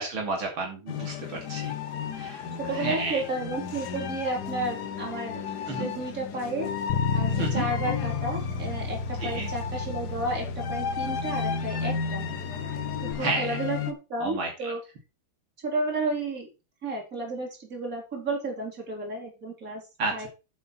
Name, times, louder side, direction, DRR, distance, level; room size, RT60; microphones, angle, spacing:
voice 1, 0.0-1.7 2.2-2.4 2.7-3.2 5.7-5.9 7.4-7.7 9.2-9.5 13.2-13.6 14.2-14.7 20.0-20.3, right 3 dB, 80° right, 1 dB, 3.5 m, -31 dB
sound 1, 0.9-13.9, left 6 dB, 60° left, 1.5 m, -34 dB
voice 2, 2.6-6.7 7.1-12.2 12.5-12.6 13.0-14.8 15.6-16.5 16.8-19.8 20.1-20.3, right 2 dB, 40° right, -1 dB, 4.5 m, -32 dB
Bass guitar, 6.9-13.1, left 5 dB, 85° left, 2.7 m, -32 dB
9.8 x 7.9 x 4.5 m, 0.29 s
omnidirectional pair, 2.2 m